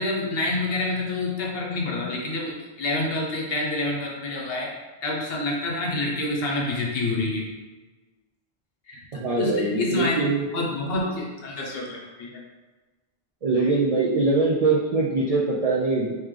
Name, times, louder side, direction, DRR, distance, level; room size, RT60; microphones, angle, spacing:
voice 1, 0.0-4.7 5.0-7.5 8.9-10.2 10.5-12.4, left 2 dB, 65° left, -1 dB, 1.0 m, -27 dB
voice 2, 9.1-10.4 13.4-16.2, right 3 dB, 55° right, -4 dB, 0.4 m, -23 dB
3.2 x 3.0 x 3.6 m, 1.2 s
omnidirectional pair, 1.1 m